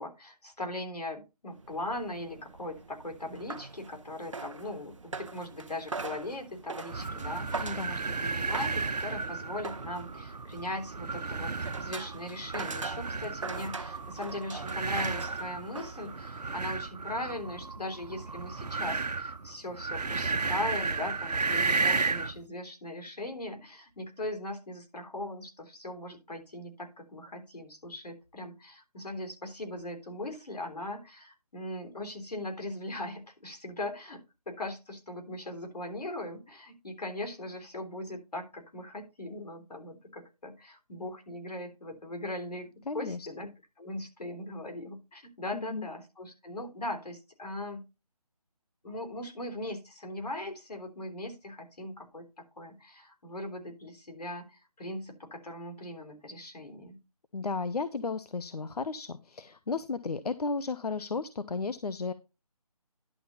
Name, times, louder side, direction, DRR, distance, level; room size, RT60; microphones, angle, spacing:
voice 1, 0.0-42.7 42.9-43.5 43.8-47.8 48.8-52.3 52.6-57.0, left 1 dB, 90° left, 5 dB, 3.5 m, -39 dB
sound 1, 1.5-16.4, right 4 dB, 50° right, 0.9 m, -43 dB
sound 2, 6.9-22.4, right 4 dB, 90° right, 1.1 m, -33 dB
voice 2, 7.6-7.9 42.9-43.5 45.5-45.9 57.3-62.1, left 4 dB, 75° left, 14 dB, 0.8 m, -34 dB
11.0 x 4.1 x 6.8 m, 0.27 s
figure-of-eight pair, 175°, 20 cm